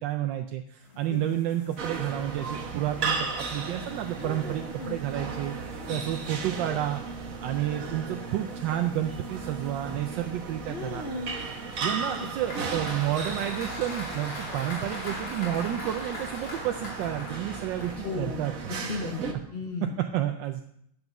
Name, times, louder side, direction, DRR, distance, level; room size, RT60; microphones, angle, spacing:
voice 1, 0.0-5.6 5.9-7.0 7.4-11.0 11.8-18.8 20.1-20.6, right 12 dB, 75° right, 5 dB, 1.1 m, -30 dB
sound 1, 0.8-13.8, right 1 dB, 25° left, 5.0 m, -52 dB
sound 2, 1.8-19.3, right 4 dB, 50° right, 1.2 m, -36 dB
voice 2, 4.2-5.0 5.8-6.0 10.7-11.4 12.2-12.3 18.0-20.0, left 4 dB, 70° left, 2 dB, 0.5 m, -36 dB
Applause, 11.4-18.5, left 1 dB, 45° left, 3.3 m, -39 dB
9.9 x 5.4 x 5.9 m, 0.72 s
omnidirectional pair, 2.4 m